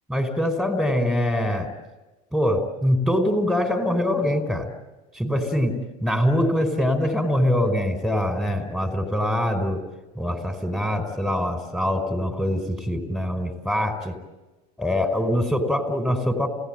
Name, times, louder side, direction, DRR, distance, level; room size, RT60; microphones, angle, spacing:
voice 1, 0.1-1.7 2.3-4.7 5.1-9.8 10.1-14.1 14.8-16.5, left 1 dB, ahead, 6 dB, 5.0 m, -23 dB
29.5 x 18.0 x 9.1 m, 1.1 s
supercardioid pair, 95°, 21 cm